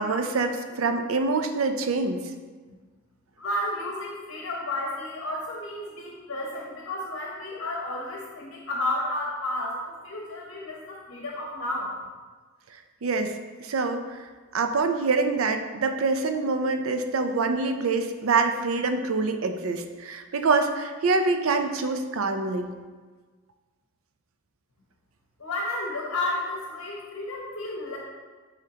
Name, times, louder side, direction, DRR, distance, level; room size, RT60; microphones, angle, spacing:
voice 1, 0.0-2.2 13.0-13.3 13.6-14.2 14.5-22.7, right 3 dB, 80° right, 6 dB, 0.5 m, -25 dB
voice 2, 3.4-11.9 25.4-28.0, left 1 dB, 70° left, -2 dB, 0.9 m, -32 dB
9.8 x 3.6 x 2.8 m, 1.4 s
head